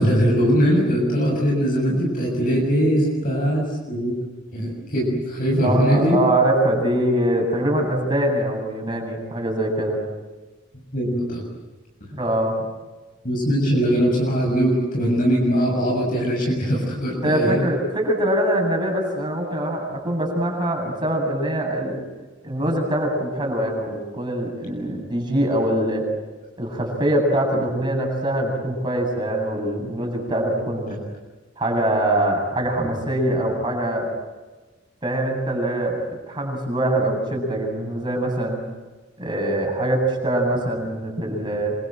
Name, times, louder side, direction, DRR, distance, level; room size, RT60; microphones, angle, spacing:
voice 1, 0.0-4.1 4.5-6.2 10.9-11.4 13.2-17.7, equal, 45° left, -1 dB, 7.0 m, -21 dB
voice 2, 5.6-10.0 12.1-12.6 17.2-22.0 22.4-26.0 26.6-31.0 31.6-34.1 35.0-36.0 36.3-38.6 39.2-41.8, right 1 dB, 25° right, 1 dB, 8.0 m, -23 dB
27.0 x 25.5 x 7.8 m, 1.2 s
head